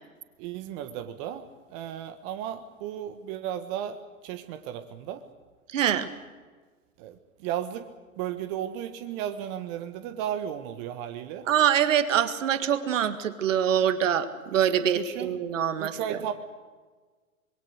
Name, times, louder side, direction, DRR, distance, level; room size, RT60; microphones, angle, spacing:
voice 1, 0.4-1.4 1.7-4.0 4.2-5.2 7.0-7.9 8.2-11.5 14.5-14.6 15.0-15.3 15.8-16.3, right 10 dB, 40° right, 8 dB, 1.4 m, -34 dB
voice 2, 5.7-6.1 11.5-16.2, right 9 dB, 60° right, 11 dB, 1.9 m, -24 dB
26.0 x 22.0 x 6.5 m, 1.4 s
figure-of-eight pair, 105°, 42 cm